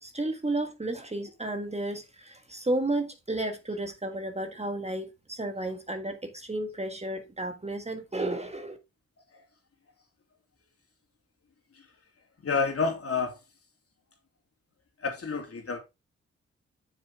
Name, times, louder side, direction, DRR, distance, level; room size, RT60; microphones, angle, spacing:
voice 1, 0.0-8.8, right 2 dB, 20° right, 1.6 m, -32 dB
voice 2, 12.4-13.3 15.0-15.8, left 4 dB, 50° left, 3.0 m, -29 dB
7.2 x 6.6 x 3.6 m
supercardioid pair, 45°, 29 cm